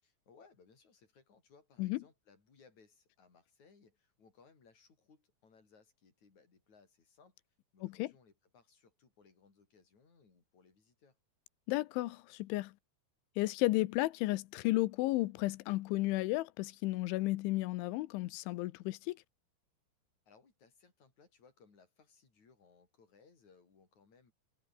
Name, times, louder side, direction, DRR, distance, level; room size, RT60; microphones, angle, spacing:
voice 1, 0.0-7.4 7.7-11.2 20.2-24.3, left 5 dB, 40° left, 6.7 m, -65 dB
voice 2, 7.8-8.1 11.7-12.7 13.4-19.2, left 19 dB, 80° left, 3.2 m, -33 dB
omnidirectional pair, 5.5 m